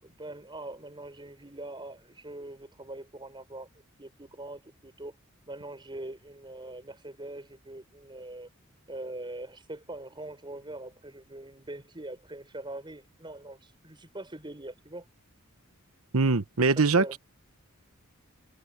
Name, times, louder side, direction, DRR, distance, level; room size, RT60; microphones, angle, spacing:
voice 1, 0.0-3.7 4.0-5.1 5.5-8.5 8.9-15.1 16.8-17.2, right 2 dB, 25° right, 6.4 m, -42 dB
voice 2, 16.1-17.2, right 3 dB, 90° right, 1.1 m, -23 dB
head